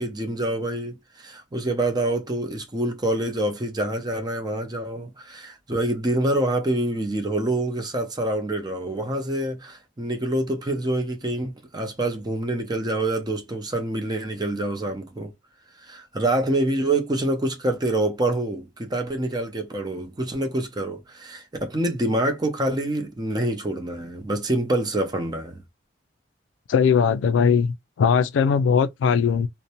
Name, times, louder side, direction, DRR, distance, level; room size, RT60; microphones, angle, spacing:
voice 1, 0.0-15.3 15.8-25.6, right 1 dB, 20° right, 0.5 m, -26 dB
voice 2, 26.7-29.5, left 6 dB, 85° left, 0.3 m, -20 dB
2.6 x 2.1 x 2.8 m
head